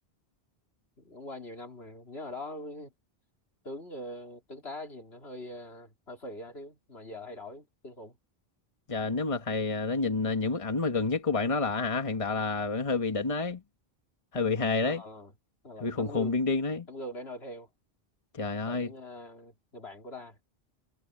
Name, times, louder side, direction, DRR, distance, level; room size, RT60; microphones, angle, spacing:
voice 1, 1.0-2.9 3.6-8.2 14.3-15.3 15.6-16.4 16.9-17.7 18.7-20.4, left 1 dB, 75° left, 3.6 m, -43 dB
voice 2, 8.9-13.6 14.3-15.0 15.8-16.9 18.3-18.9, left 3 dB, 30° left, 1.5 m, -29 dB
omnidirectional pair, 1.1 m